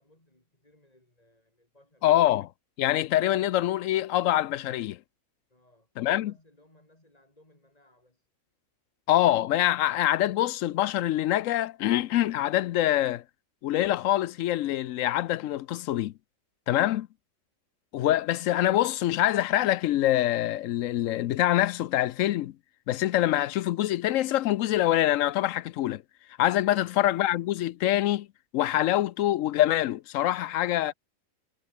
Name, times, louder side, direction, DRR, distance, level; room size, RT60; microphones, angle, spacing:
voice 1, 0.0-2.3 5.5-8.3 26.7-27.0 30.4-30.9, left 1 dB, 25° left, 5.2 m, -61 dB
voice 2, 2.0-2.5 2.8-5.0 6.0-6.3 9.1-13.2 13.6-16.1 16.7-17.1 17.9-22.5 22.9-26.0 26.4-28.3 28.5-30.9, left 13 dB, 75° left, 0.9 m, -25 dB
omnidirectional pair, 1.4 m